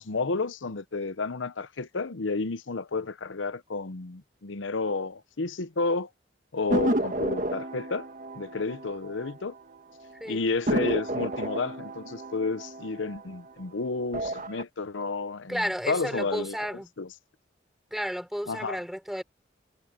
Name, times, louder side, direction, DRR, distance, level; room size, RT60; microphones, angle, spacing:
voice 1, 0.0-6.1 6.5-8.1 8.4-9.5 10.3-16.7 17.0-17.1 18.5-18.8, left 3 dB, 90° left, 0.8 m, -31 dB
sound 1, 6.7-9.8 10.0-10.1 10.7-13.6 14.0-14.6, right 1 dB, 45° right, 1.6 m, -31 dB
voice 2, 15.5-16.9 17.9-19.2, equal, ahead, 5.3 m, -32 dB
head